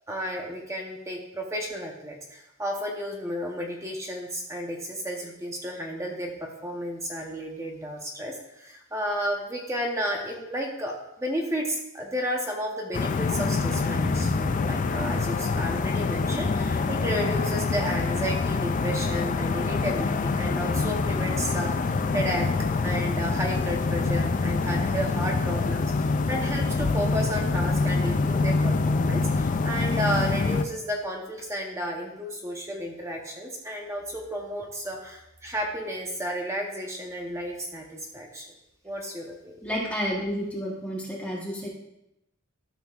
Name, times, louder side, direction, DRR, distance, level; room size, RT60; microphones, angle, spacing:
voice 1, 0.1-22.5 22.8-38.5 38.8-39.5, equal, 15° right, 0 dB, 0.8 m, -32 dB
sound 1, 12.9-30.6, left 3 dB, 35° left, 0.3 m, -25 dB
voice 2, 39.6-41.7, equal, 5° left, -4 dB, 1.1 m, -31 dB
12.5 x 6.2 x 2.4 m, 0.87 s
head